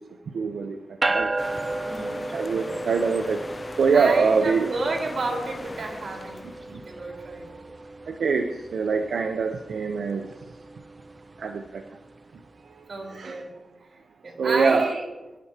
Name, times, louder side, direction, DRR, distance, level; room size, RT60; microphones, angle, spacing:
voice 1, 0.3-1.3 2.3-3.4 3.8-4.7 6.7-6.8 8.1-10.3 11.4-11.8 13.1-13.4 14.4-14.9, right 5 dB, 85° right, 5 dB, 0.7 m, -24 dB
sound 1, 1.0-12.6, right 2 dB, 30° right, 0.5 m, -34 dB
sound 2, 1.4-6.8, left 2 dB, 25° left, 0.6 m, -40 dB
voice 2, 1.8-2.3 3.9-7.6 12.9-13.5 14.2-15.1, right 3 dB, 65° right, -1 dB, 4.1 m, -31 dB
22.5 x 11.0 x 2.9 m, 1.1 s
wide cardioid pair, 110°, 0 cm